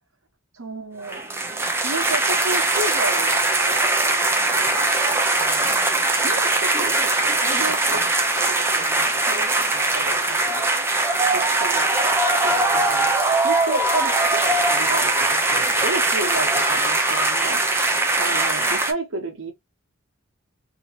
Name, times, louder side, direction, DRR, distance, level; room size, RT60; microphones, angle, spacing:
voice 1, 0.5-1.3 1.8-3.4 3.6-3.8 4.0-4.8 5.3-5.8 6.2-8.0 8.3-10.7 11.3-11.9 12.4-17.6 18.2-19.5, right 2 dB, 75° right, 1.0 m, -32 dB
sound 1, 1.0-18.9, right 2 dB, 10° right, 0.6 m, -21 dB
2.8 x 2.8 x 2.8 m
head